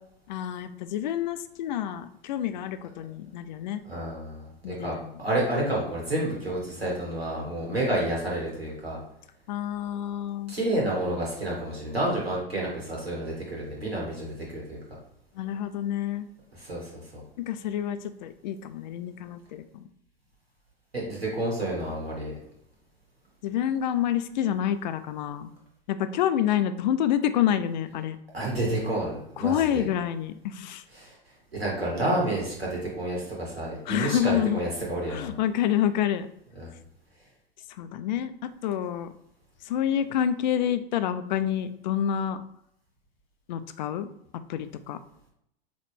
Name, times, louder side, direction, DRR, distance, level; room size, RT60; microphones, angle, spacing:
voice 1, 0.3-3.8 4.6-5.2 7.6-7.8 9.5-10.6 15.4-16.3 17.4-19.6 23.4-25.5 25.9-28.2 29.4-30.8 33.9-34.6 35.1-36.3 37.8-39.1 39.7-42.4 43.5-44.1 44.5-45.0, left 10 dB, 50° left, 12 dB, 0.4 m, -28 dB
voice 2, 3.8-9.0 10.5-14.8 16.5-17.2 20.9-22.4 28.3-29.8 30.9-31.2 31.5-35.3 36.5-36.8, right 1 dB, 85° right, -3 dB, 1.5 m, -30 dB
4.0 x 3.1 x 3.4 m, 0.75 s
figure-of-eight pair, 95°, 30 cm